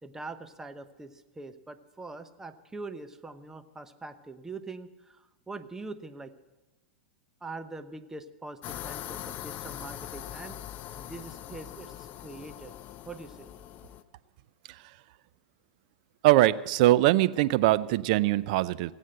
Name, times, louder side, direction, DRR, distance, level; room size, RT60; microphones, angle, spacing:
voice 1, 0.0-6.3 7.4-10.6 11.0-12.7 13.1-13.5, right 3 dB, 10° right, 10 dB, 0.9 m, -43 dB
sound 1, 8.6-14.0, left 12 dB, 35° left, 0.7 m, -41 dB
voice 2, 16.2-18.9, right 16 dB, 55° right, 17 dB, 0.6 m, -22 dB
18.5 x 8.3 x 7.7 m, 1.1 s
hypercardioid pair, 120°, 5 cm